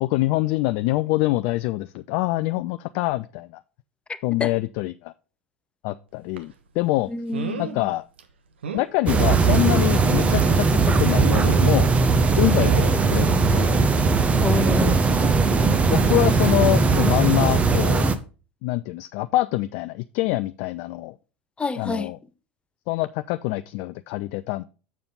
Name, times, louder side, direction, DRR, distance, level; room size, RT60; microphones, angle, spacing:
voice 1, 0.0-3.6 4.2-5.1 5.8-7.1 7.6-8.1 8.7-11.9 12.4-13.8 15.9-18.1 18.6-21.2 21.8-22.2 22.9-24.6, left 18 dB, 55° left, 0.3 m, -25 dB
sound 1, 6.4-6.5 7.3-7.8 8.2-8.3 8.6-8.9 9.8-10.7 11.1-11.9 12.5-13.0 14.5-14.9 16.1-16.3 16.7-16.8, right 7 dB, 75° right, 0.9 m, -32 dB
voice 2, 7.1-7.9 14.4-15.1 21.6-22.1, left 4 dB, 20° left, 0.8 m, -28 dB
sound 2, 9.1-18.1, right 4 dB, 20° right, 0.8 m, -19 dB
7.2 x 6.8 x 3.8 m
figure-of-eight pair, 75°, 6 cm